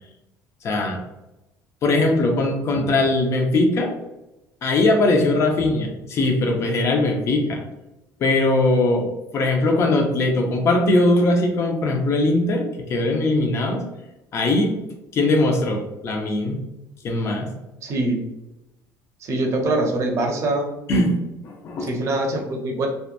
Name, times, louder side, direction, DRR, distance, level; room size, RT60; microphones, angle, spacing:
voice 1, 0.6-1.0 1.8-3.9 4.6-7.6 8.2-9.1 9.3-13.8 14.3-14.7 15.1-16.6 17.0-17.5 20.9-21.2 21.4-21.9, left 2 dB, 40° left, 2 dB, 0.5 m, -20 dB
voice 2, 17.8-18.2 19.2-20.7 21.8-22.9, right 2 dB, 45° right, 2 dB, 0.6 m, -23 dB
2.8 x 2.2 x 2.4 m, 0.97 s
cardioid pair, 140°, 7 cm